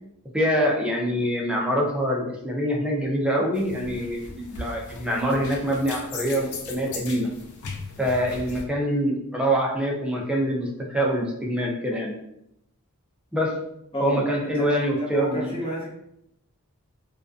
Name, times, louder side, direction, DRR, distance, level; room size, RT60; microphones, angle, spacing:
voice 1, 0.3-7.3 8.0-12.1 13.3-13.5 14.0-15.5, equal, 5° right, -2 dB, 0.4 m, -25 dB
sound 1, 3.5-8.6, left 3 dB, 80° left, 0.5 m, -38 dB
voice 2, 13.9-15.9, equal, 25° left, -6 dB, 0.8 m, -30 dB
2.4 x 2.2 x 2.3 m, 0.78 s
head